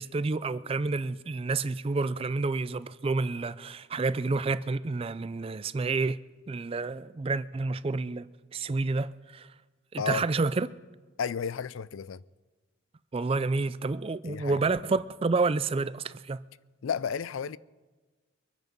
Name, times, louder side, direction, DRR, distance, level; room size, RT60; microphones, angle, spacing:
voice 1, 0.0-6.2 6.5-8.3 8.5-9.5 9.9-10.7 13.1-16.4, right 3 dB, 25° right, 0.4 m, -29 dB
voice 2, 11.2-12.2 14.3-14.6 16.8-17.6, left 7 dB, 75° left, 0.4 m, -32 dB
23.5 x 9.6 x 5.3 m
head